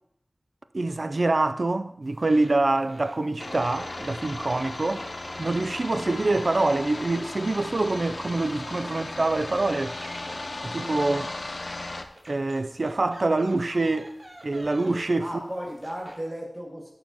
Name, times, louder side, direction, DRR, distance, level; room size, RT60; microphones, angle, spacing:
voice 1, 0.7-5.1 5.4-10.0 10.6-11.3 12.3-14.1 14.4-15.3, right 2 dB, 65° right, 0.4 m, -25 dB
sound 1, 2.0-16.2, right 1 dB, 40° right, 2.8 m, -48 dB
sound 2, 3.4-12.0, left 2 dB, 65° left, 0.9 m, -36 dB
voice 2, 15.2-16.9, equal, 25° right, 2.0 m, -36 dB
17.0 x 6.6 x 2.9 m
wide cardioid pair, 50°, 0 cm